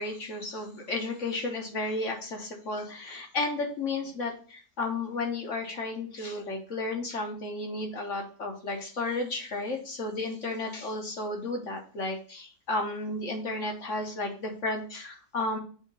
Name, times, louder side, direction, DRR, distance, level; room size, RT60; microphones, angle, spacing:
voice 1, 0.0-15.6, left 2 dB, 50° left, 2 dB, 1.3 m, -33 dB
7.0 x 2.8 x 5.2 m, 0.41 s
omnidirectional pair, 1.8 m